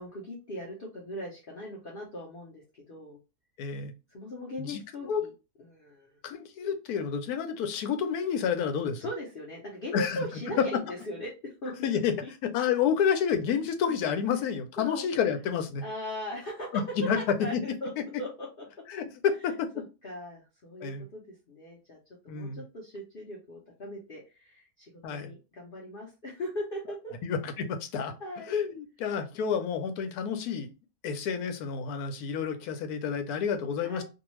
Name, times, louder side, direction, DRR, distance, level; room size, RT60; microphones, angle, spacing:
voice 1, 0.0-3.2 4.1-5.3 5.6-6.2 9.0-11.7 12.2-12.3 14.4-15.1 15.8-18.7 19.7-22.0 22.2-27.1 28.2-28.5 33.8-34.0, left 1 dB, 50° left, -2 dB, 0.7 m, -39 dB
voice 2, 3.6-3.9 4.6-5.3 6.2-9.1 9.9-10.2 11.8-12.1 12.4-15.8 17.0-17.2 18.9-19.7 20.8-21.0 22.3-22.6 25.0-25.3 27.2-28.1 28.5-30.7 31.0-34.0, left 7 dB, 80° left, 8 dB, 1.1 m, -29 dB
2.7 x 2.3 x 3.0 m, 0.29 s
omnidirectional pair, 1.6 m